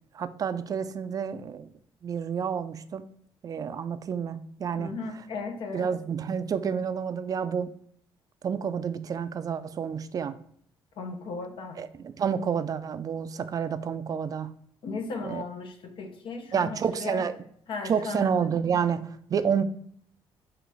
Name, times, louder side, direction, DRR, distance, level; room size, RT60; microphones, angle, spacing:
voice 1, 0.1-1.7 2.0-3.1 3.4-4.9 5.7-7.8 8.4-10.4 11.8-14.5 15.2-15.4 16.5-17.4 17.8-19.6, right 7 dB, 40° right, 13 dB, 0.3 m, -29 dB
voice 2, 4.8-5.9 11.0-11.8 14.8-17.2 17.7-18.3, left 4 dB, 65° left, 4 dB, 0.7 m, -36 dB
3.9 x 2.9 x 4.7 m, 0.63 s
cardioid pair, 105°, 9 cm